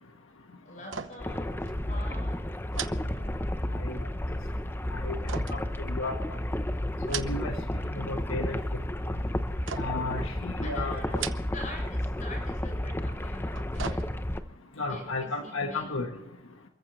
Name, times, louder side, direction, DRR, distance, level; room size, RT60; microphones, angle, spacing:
voice 1, 0.6-2.5 10.6-14.1 14.9-15.9, left 1 dB, 40° left, 2 dB, 7.3 m, -45 dB
sound 1, 0.8-1.4 1.7-1.8 2.7-3.8 5.3-6.4 6.9-7.7 8.0-8.6 9.7-10.2 11.0-11.8 12.1-12.2 13.3-14.5 14.9-15.0, right 7 dB, 70° right, 0.9 m, -39 dB
sound 2, 1.2-14.4, left 1 dB, 10° left, 0.7 m, -32 dB
voice 2, 5.9-6.4 7.1-7.5 7.8-8.6 9.7-11.2 14.8-16.1, left 3 dB, 85° left, 4 dB, 1.4 m, -33 dB
28.5 x 14.5 x 3.2 m, 0.88 s
head